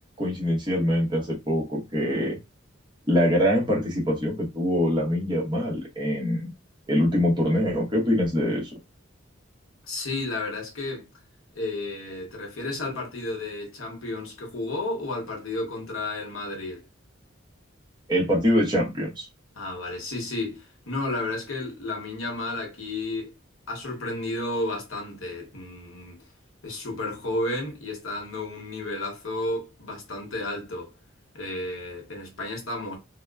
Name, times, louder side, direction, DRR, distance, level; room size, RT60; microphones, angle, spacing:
voice 1, 0.2-2.4 3.1-6.5 6.9-8.7 18.1-19.3, equal, 25° right, 0.9 m, -24 dB
voice 2, 9.9-11.1 11.5-16.8 19.6-23.3 23.7-26.2 26.6-30.9 31.3-33.0, left 2 dB, 80° left, 0.9 m, -32 dB
2.9 x 2.0 x 2.3 m
head